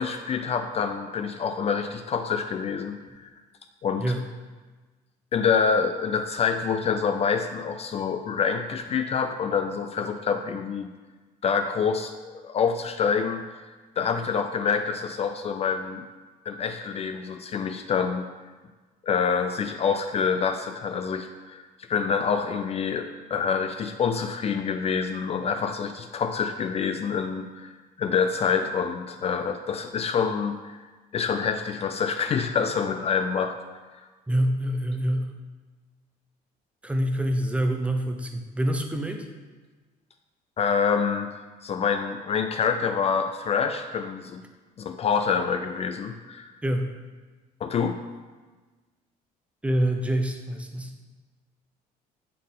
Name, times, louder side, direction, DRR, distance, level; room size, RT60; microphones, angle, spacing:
voice 1, 0.0-3.3 3.8-4.1 5.3-10.9 11.4-13.4 14.0-16.0 16.5-18.3 19.0-30.8 31.1-33.5 40.6-41.3 41.6-44.4 44.8-46.5 47.6-48.0, left 6 dB, 40° left, 7 dB, 0.4 m, -26 dB
voice 2, 34.3-35.3 36.8-39.3 46.6-46.9 49.6-50.9, right 1 dB, 5° right, 5 dB, 0.6 m, -26 dB
8.3 x 3.7 x 3.8 m, 1.3 s
cardioid pair, 110°, 17 cm